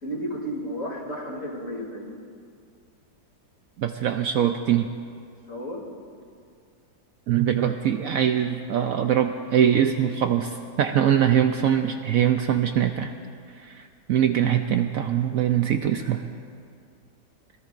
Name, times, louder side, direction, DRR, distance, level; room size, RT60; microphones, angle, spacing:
voice 1, 0.0-2.1 5.5-5.8, equal, 45° left, -3 dB, 3.4 m, -33 dB
voice 2, 3.8-4.9 7.3-13.1 13.6-16.3, right 9 dB, 65° right, 6 dB, 0.9 m, -22 dB
25.0 x 21.0 x 2.6 m, 2.3 s
omnidirectional pair, 1.8 m